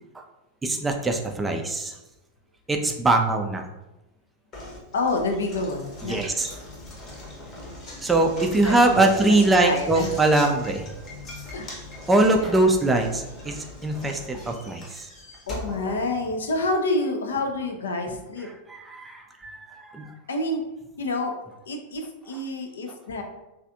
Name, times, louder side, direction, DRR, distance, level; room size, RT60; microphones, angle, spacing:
voice 1, 0.6-1.9 2.7-3.6 6.0-6.5 8.0-10.8 12.1-15.1 18.7-20.1, right 2 dB, 10° right, 3 dB, 0.3 m, -22 dB
Knock, 4.5-16.7, left 2 dB, 30° left, 0.8 m, -40 dB
voice 2, 4.9-6.2 8.6-10.1 11.5-11.7 12.3-12.6 15.5-18.5 20.3-20.6 21.0-21.3 21.7-23.2, left 2 dB, 65° left, 4 dB, 0.4 m, -28 dB
3.1 x 2.5 x 2.5 m, 0.99 s
figure-of-eight pair, 90°, 0 cm